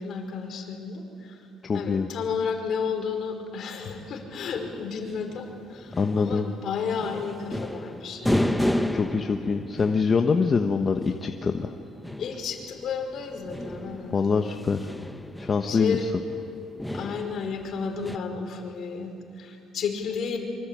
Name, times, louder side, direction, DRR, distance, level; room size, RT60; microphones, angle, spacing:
voice 1, 0.0-1.4 1.7-8.7 12.2-14.1 15.7-16.1 16.9-20.4, left 6 dB, 55° left, 3 dB, 5.0 m, -32 dB
voice 2, 1.6-2.1 6.0-6.5 8.9-11.7 14.1-14.9 15.4-16.0, left 5 dB, 30° left, 5 dB, 1.1 m, -24 dB
sound 1, 4.5-18.2, left 1 dB, 5° left, 1.0 m, -33 dB
26.0 x 25.0 x 9.1 m, 2.5 s
cardioid pair, 135°, 0 cm